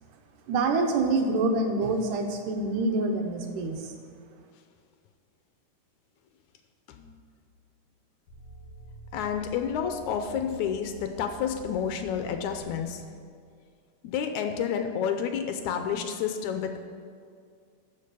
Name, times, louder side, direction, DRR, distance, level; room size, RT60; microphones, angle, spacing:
voice 1, 0.5-3.9, right 3 dB, 80° right, 4 dB, 2.6 m, -26 dB
sound 1, 8.3-13.3, right 1 dB, 45° left, 3.1 m, -48 dB
voice 2, 9.1-13.0 14.0-16.8, left 7 dB, 80° left, 6 dB, 2.0 m, -30 dB
13.5 x 5.3 x 6.8 m, 2.2 s
omnidirectional pair, 3.6 m